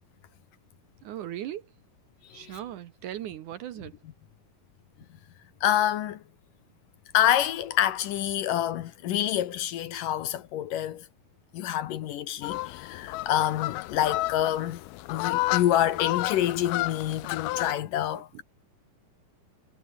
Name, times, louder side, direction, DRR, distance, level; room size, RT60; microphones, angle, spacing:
voice 1, 1.0-1.6 2.3-3.9 18.1-18.2, right 12 dB, 65° right, 2.2 m, -38 dB
voice 2, 5.6-6.2 7.1-11.0 11.5-14.8 15.1-18.3, left 11 dB, 70° left, 2.6 m, -27 dB
sound 1, 12.4-17.7, left 19 dB, 85° left, 2.6 m, -31 dB
omnidirectional pair, 4.4 m